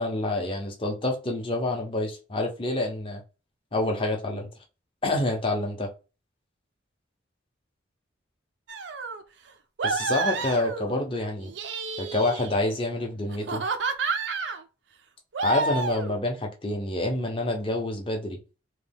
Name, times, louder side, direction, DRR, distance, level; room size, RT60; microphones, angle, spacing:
voice 1, 0.0-3.2 3.7-4.5 5.0-5.9 9.8-11.5 12.0-13.6 15.4-18.4, left 2 dB, 30° left, 0.8 m, -27 dB
sound 1, 8.7-9.2 9.8-11.0 11.4-12.7 13.3-14.6 15.3-16.2, right 4 dB, 70° right, 0.5 m, -30 dB
3.2 x 2.3 x 3.4 m
head